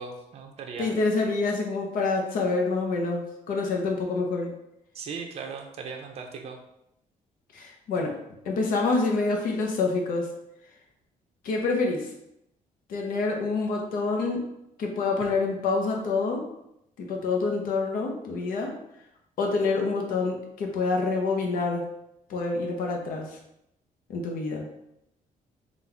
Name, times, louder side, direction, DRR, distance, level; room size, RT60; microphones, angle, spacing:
voice 1, 0.0-0.9 4.9-6.6, right 5 dB, 45° right, 2 dB, 0.6 m, -38 dB
voice 2, 0.8-4.5 7.5-8.1 8.4-10.3 11.4-12.1 12.9-14.4 14.8-16.5 17.0-18.7 19.4-21.9 22.3-23.4 24.1-24.7, left 3 dB, 75° left, 1 dB, 0.8 m, -27 dB
4.0 x 2.5 x 4.4 m, 0.80 s
cardioid pair, 175°, 15 cm